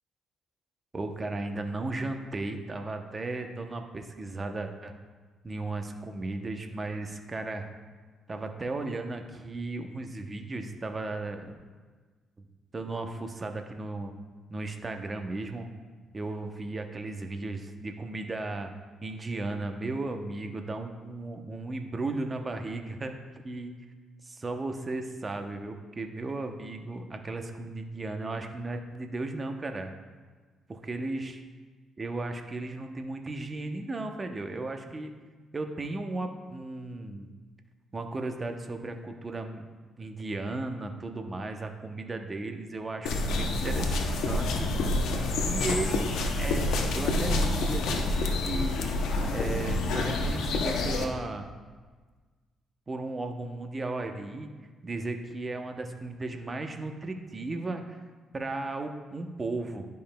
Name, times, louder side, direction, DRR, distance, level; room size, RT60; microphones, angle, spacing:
voice 1, 0.9-4.9 5.4-7.7 8.3-11.5 12.7-14.1 14.5-15.7 16.1-18.7 19.0-23.1 23.4-23.8 24.2-29.9 30.7-31.4 32.0-35.1 35.5-37.3 37.9-39.7 40.0-44.7 45.4-48.8 49.3-51.5 52.9-54.5 54.8-58.0 58.3-59.9, right 2 dB, 30° right, 5 dB, 0.7 m, -35 dB
sound 1, 43.1-51.1, left 2 dB, 80° left, 0.7 m, -28 dB
11.0 x 5.3 x 2.2 m, 1.4 s
cardioid pair, 90°, 0 cm